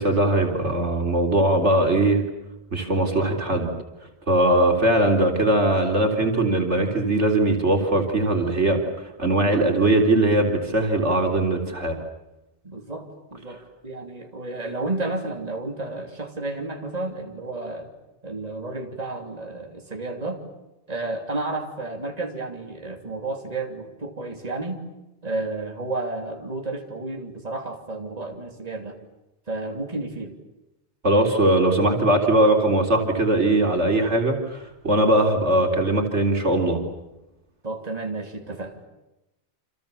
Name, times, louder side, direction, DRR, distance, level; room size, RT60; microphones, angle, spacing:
voice 1, 0.0-2.2 2.7-3.7 4.3-12.0 31.0-36.8, right 1 dB, 80° right, 3 dB, 4.1 m, -20 dB
voice 2, 12.6-17.9 18.2-20.4 20.9-24.8 25.2-29.0 29.5-30.3 37.6-38.8, right 2 dB, 35° right, 3 dB, 3.2 m, -32 dB
29.0 x 27.5 x 7.1 m, 0.97 s
omnidirectional pair, 1.2 m